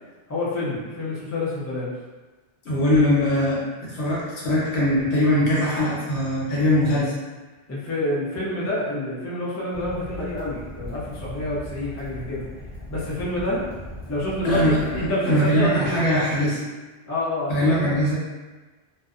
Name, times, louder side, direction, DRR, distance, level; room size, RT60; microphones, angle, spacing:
voice 1, 0.3-1.9 7.7-12.5 12.9-13.6 14.1-16.6 17.1-17.8, left 1 dB, 25° left, -8 dB, 0.4 m, -28 dB
voice 2, 2.6-7.1 14.4-16.5 17.5-18.1, left 1 dB, 75° left, -7 dB, 1.1 m, -21 dB
Fire, 9.7-15.1, left 2 dB, 40° right, 0.8 m, -38 dB
2.6 x 2.0 x 2.4 m, 1.2 s
omnidirectional pair, 1.1 m